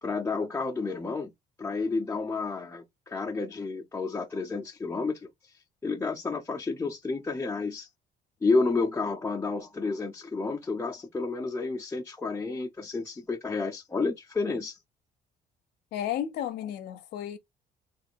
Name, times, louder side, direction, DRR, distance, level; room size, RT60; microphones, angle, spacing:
voice 1, 0.0-1.3 1.6-5.3 5.8-7.9 8.4-14.8, left 3 dB, 15° left, 0.6 m, -30 dB
voice 2, 15.9-17.4, left 10 dB, 75° left, 0.6 m, -33 dB
3.2 x 2.4 x 2.8 m
cardioid pair, 110°, 17 cm